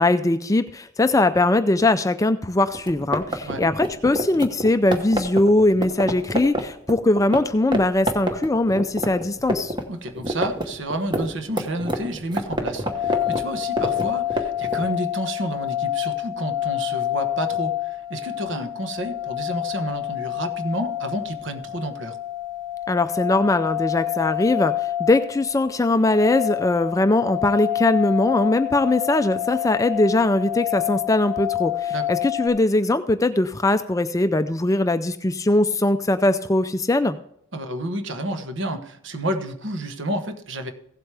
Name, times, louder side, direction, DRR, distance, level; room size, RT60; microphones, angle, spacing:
voice 1, 0.0-9.7 22.9-24.7 25.0-37.2, left 2 dB, 15° left, 11 dB, 0.4 m, -20 dB
sound 1, 2.7-7.4 7.7-7.8 8.1-9.8 10.1-14.8, right 1 dB, 20° right, 1.1 m, -26 dB
voice 2, 9.9-22.2 31.9-32.1 37.5-40.7, right 1 dB, 65° right, 8 dB, 1.1 m, -30 dB
sound 2, 12.8-32.5, left 13 dB, 85° right, 2.1 m, -28 dB
16.0 x 7.9 x 3.4 m, 0.70 s
head